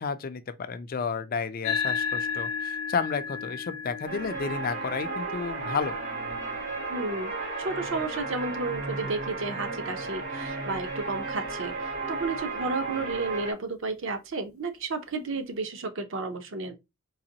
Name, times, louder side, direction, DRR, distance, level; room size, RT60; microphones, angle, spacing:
voice 1, 0.0-6.0, left 5 dB, 40° left, 0.4 m, -32 dB
sound 1, 1.6-10.4, left 6 dB, 70° left, 0.7 m, -36 dB
sound 2, 4.1-13.5, right 3 dB, 80° right, 1.9 m, -34 dB
voice 2, 6.9-16.8, right 3 dB, 55° right, 0.6 m, -32 dB
4.0 x 2.9 x 2.7 m
head